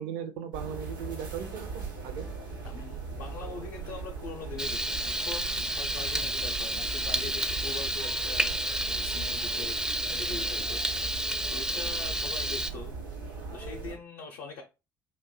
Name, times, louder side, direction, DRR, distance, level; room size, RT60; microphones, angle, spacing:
voice 1, 0.0-2.3, right 8 dB, 60° right, 8 dB, 0.5 m, -38 dB
sound 1, 0.5-14.0, right 4 dB, 85° right, 0.8 m, -39 dB
voice 2, 2.6-11.2 11.5-13.0 13.5-14.6, left 4 dB, 60° left, 1 dB, 0.5 m, -42 dB
Frying (food), 4.6-12.7, right 1 dB, 5° right, 0.4 m, -31 dB
2.6 x 2.2 x 3.7 m, 0.28 s
figure-of-eight pair, 50°, 11 cm